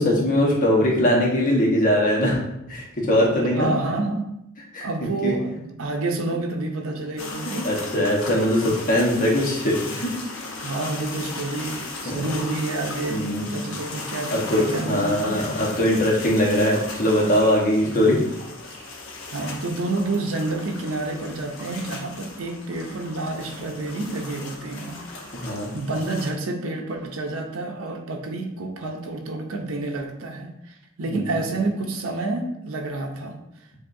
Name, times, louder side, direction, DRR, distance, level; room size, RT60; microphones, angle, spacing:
voice 1, 0.0-2.4 2.7-3.7 4.7-4.9 5.2-5.3 7.4-10.1 12.0-12.2 13.1-13.5 14.3-18.2 25.3-25.7 31.1-31.3, left 1 dB, 40° left, -3 dB, 1.1 m, -21 dB
voice 2, 3.5-4.3 4.8-7.7 10.6-15.4 17.8-18.0 19.3-33.4, right 2 dB, 85° right, 2 dB, 0.7 m, -29 dB
sound 1, 7.2-26.3, left 3 dB, 80° left, 0.9 m, -37 dB
7.3 x 2.7 x 2.6 m, 0.83 s
head